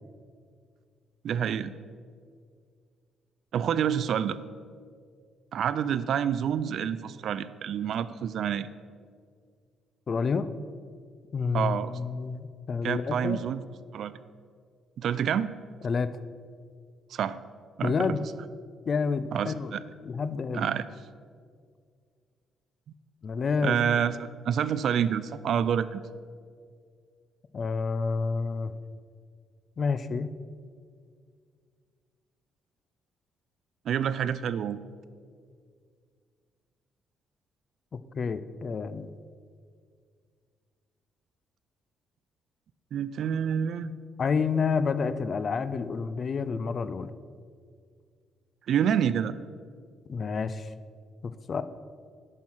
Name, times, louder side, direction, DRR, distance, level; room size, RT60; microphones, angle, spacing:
voice 1, 1.2-1.7 3.5-4.4 5.5-8.7 11.5-11.9 12.8-13.6 13.9-14.1 15.0-15.5 17.1-17.4 17.8-18.2 19.3-19.8 20.5-20.9 23.6-26.0 33.9-34.8 42.9-43.9 48.7-49.3, right 8 dB, 65° right, 15 dB, 0.3 m, -28 dB
voice 2, 10.1-10.5 11.3-13.4 15.8-16.1 17.8-18.2 18.8-19.8 20.0-20.7 23.2-23.8 27.5-28.7 29.8-30.3 38.1-39.1 44.2-47.1 50.1-50.7 51.2-51.6, left 5 dB, 45° left, 13 dB, 0.4 m, -29 dB
8.8 x 5.5 x 6.2 m, 2.1 s
cardioid pair, 90°, 0 cm